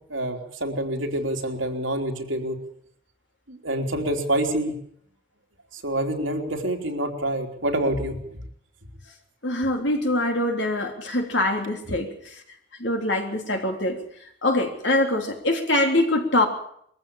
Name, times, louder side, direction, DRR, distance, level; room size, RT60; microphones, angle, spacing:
voice 1, 0.1-2.6 3.5-4.7 5.7-8.4, right 1 dB, 75° right, 1 dB, 3.6 m, -27 dB
voice 2, 9.4-12.4 12.8-14.0 14.4-16.5, left 1 dB, 60° left, 3 dB, 3.5 m, -24 dB
22.0 x 15.0 x 8.8 m, 0.69 s
head